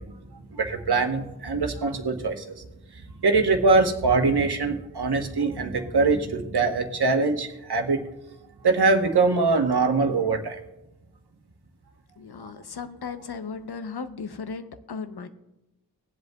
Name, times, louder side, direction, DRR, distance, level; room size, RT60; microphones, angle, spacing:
voice 1, 0.0-2.6 3.2-8.0 8.6-10.6, right 3 dB, 85° right, 5 dB, 1.1 m, -23 dB
voice 2, 12.2-15.3, left 5 dB, 85° left, 10 dB, 0.8 m, -36 dB
20.5 x 7.9 x 2.3 m, 0.96 s
wide cardioid pair, 70°, 38 cm